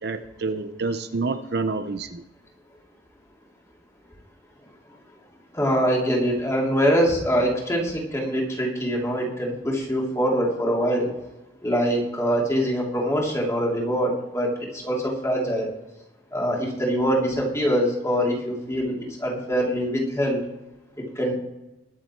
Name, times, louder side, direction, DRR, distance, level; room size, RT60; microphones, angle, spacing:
voice 1, 0.0-2.2, right 3 dB, 60° right, 10 dB, 0.7 m, -28 dB
voice 2, 5.5-11.1 11.6-15.7 16.3-20.4 21.1-21.3, equal, 15° left, -2 dB, 3.0 m, -24 dB
21.0 x 7.5 x 4.5 m, 0.98 s
head